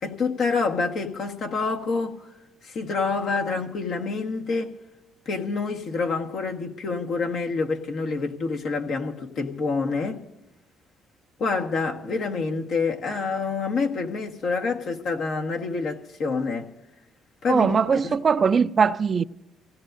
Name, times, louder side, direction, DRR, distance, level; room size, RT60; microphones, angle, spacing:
voice 1, 0.0-2.3 2.6-4.7 5.2-10.2 11.4-16.7 17.4-18.2, left 4 dB, 65° left, 1.5 m, -27 dB
voice 2, 17.5-19.2, right 6 dB, 45° right, 0.4 m, -21 dB
27.5 x 16.5 x 2.6 m
supercardioid pair, 65°, 0 cm